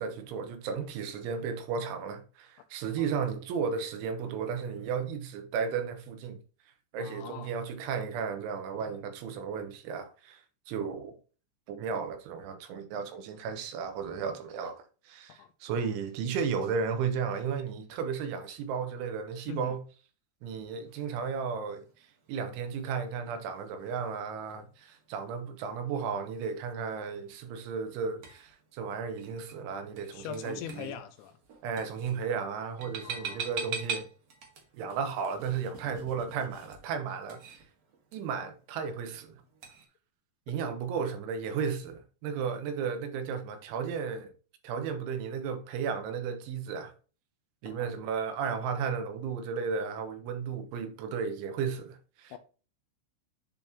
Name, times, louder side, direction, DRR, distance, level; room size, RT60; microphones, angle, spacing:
voice 1, 0.0-6.4 6.9-10.4 10.7-11.1 11.7-19.8 20.4-21.9 22.3-31.0 31.6-34.1 34.8-37.6 38.1-39.4 40.5-44.3 44.6-46.9 47.6-52.3, right 6 dB, 85° right, 3.5 m, -34 dB
voice 2, 7.0-7.5 15.4-15.5 19.5-19.8 30.1-31.4 33.0-33.7 47.7-47.9 52.3-52.4, left 10 dB, 80° left, 3.0 m, -42 dB
sound 1, 20.4-39.9, right 6 dB, 55° right, 1.9 m, -46 dB
10.5 x 4.2 x 2.9 m
omnidirectional pair, 5.5 m